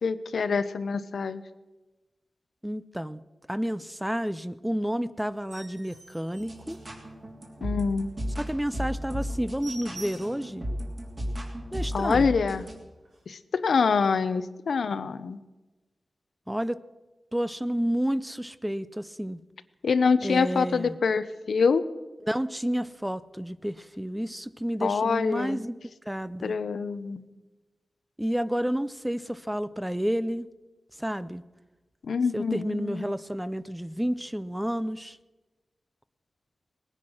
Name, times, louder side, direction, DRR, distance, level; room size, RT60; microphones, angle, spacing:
voice 1, 0.0-1.4 7.6-8.1 11.9-12.7 13.3-15.4 19.8-21.9 24.8-25.6 26.4-27.2 32.0-33.1, left 5 dB, 85° left, 13 dB, 0.7 m, -25 dB
voice 2, 2.6-3.2 3.5-6.8 8.4-10.6 11.7-12.3 16.5-16.8 17.3-19.4 20.2-21.0 22.3-25.8 26.1-26.6 28.2-30.5 31.0-31.4 32.3-35.2, equal, 5° right, 15 dB, 0.4 m, -30 dB
sound 1, 5.3-7.5 7.9-8.1 8.4-8.5 8.8-9.0 9.2-10.5 11.0-11.1 11.5-11.6 11.8-12.3 13.0-13.2, right 2 dB, 80° right, 4.9 m, -47 dB
sound 2, 6.4-12.7, equal, 35° right, 3.0 m, -35 dB
19.5 x 9.9 x 6.3 m, 1.2 s
wide cardioid pair, 135°, 0 cm